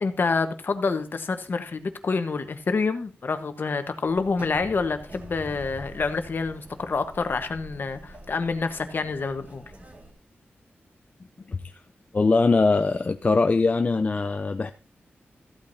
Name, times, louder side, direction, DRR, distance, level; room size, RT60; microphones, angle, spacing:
voice 1, 0.0-9.6, left 4 dB, 55° left, 1.1 m, -27 dB
sound 1, 4.0-10.1, right 1 dB, 40° right, 1.9 m, -45 dB
voice 2, 11.5-11.8 12.1-14.7, left 3 dB, 35° left, 0.4 m, -22 dB
14.5 x 8.7 x 2.6 m
wide cardioid pair, 105°, 4 cm